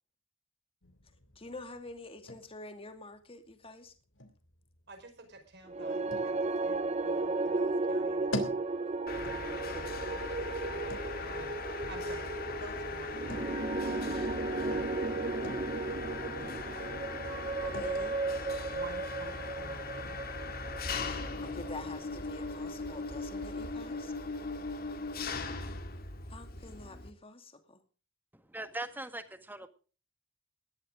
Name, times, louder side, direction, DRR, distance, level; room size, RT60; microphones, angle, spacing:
sound 1, 0.8-20.4, left 1 dB, 75° left, 3.0 m, -48 dB
voice 1, 1.4-3.9 14.1-14.4 17.6-18.2 21.4-24.1 26.3-27.8, left 2 dB, 30° left, 7 dB, 2.4 m, -47 dB
voice 2, 4.9-8.3 9.2-10.4 10.7-10.9 11.2-11.5 11.9-12.3 12.5-15.0 16.3-17.0 18.7-20.3, right 2 dB, 60° right, 6 dB, 5.1 m, -51 dB
sound 2, 5.7-22.0, right 3 dB, 35° right, 0.8 m, -35 dB
Mechanisms, 9.1-27.1, left 3 dB, 50° left, 2.4 m, -39 dB
voice 3, 28.3-29.7, right 2 dB, 10° right, 9 dB, 1.6 m, -41 dB
19.5 x 13.0 x 3.8 m, 0.37 s
head